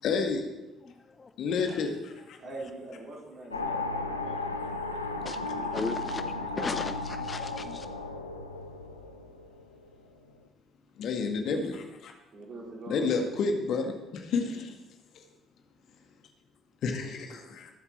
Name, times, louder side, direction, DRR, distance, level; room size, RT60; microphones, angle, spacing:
voice 1, 0.0-0.5 1.4-2.4 11.0-12.1 12.9-14.8 15.1-15.2 16.8-17.7, left 4 dB, 55° left, 4 dB, 1.9 m, -30 dB
voice 2, 2.4-4.4 5.2-6.8 12.3-13.1 17.0-17.4, right 2 dB, 50° right, -2 dB, 4.4 m, -44 dB
sound 1, 3.5-9.9, left 3 dB, 90° left, 0.8 m, -35 dB
voice 3, 5.7-6.2 6.6-7.9, left 4 dB, 30° left, 10 dB, 0.7 m, -35 dB
20.5 x 8.0 x 4.4 m, 1.0 s
figure-of-eight pair, 45°, 0 cm